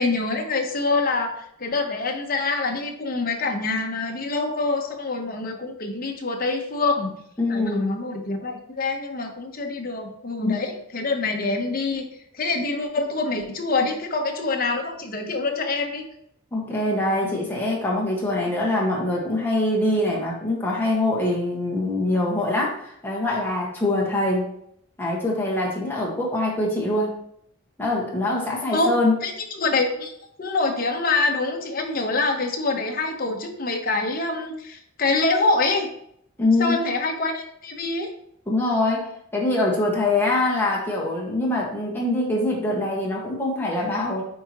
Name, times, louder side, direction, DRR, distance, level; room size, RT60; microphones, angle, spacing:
voice 1, 0.0-7.2 7.5-12.0 12.3-16.0 28.7-28.9 29.2-30.1 30.4-35.9 36.6-38.1, left 3 dB, 45° left, 3 dB, 1.0 m, -25 dB
voice 2, 7.4-7.8 10.4-10.5 16.5-24.4 25.0-27.1 27.8-29.1 36.4-36.8 38.5-44.2, left 2 dB, 10° left, -4 dB, 1.5 m, -24 dB
8.5 x 4.6 x 3.0 m, 0.71 s
head